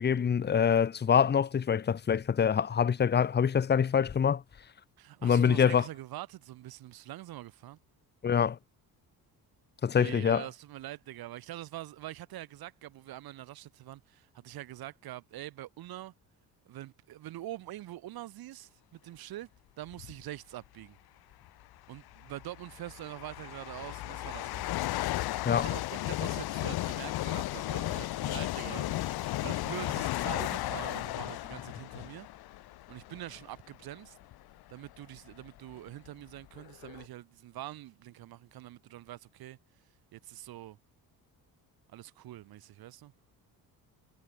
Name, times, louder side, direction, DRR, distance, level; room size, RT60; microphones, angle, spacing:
voice 1, 0.0-4.4 5.2-5.8 8.2-8.6 9.8-10.4 25.4-25.7, left 7 dB, 30° left, 1.4 m, -25 dB
voice 2, 5.0-7.8 10.0-16.1 16.6-19.5 19.8-21.0 21.9-24.7 25.5-32.3 32.9-34.2 34.7-39.6 40.1-40.8 41.9-43.1, right 14 dB, 75° right, 6.2 m, -44 dB
sound 1, 19.9-20.2 21.3-21.4 22.2-33.6 34.2-34.4 35.2-35.3 35.5-37.0, left 16 dB, 85° left, 2.9 m, -35 dB
cardioid pair, 160°, 37 cm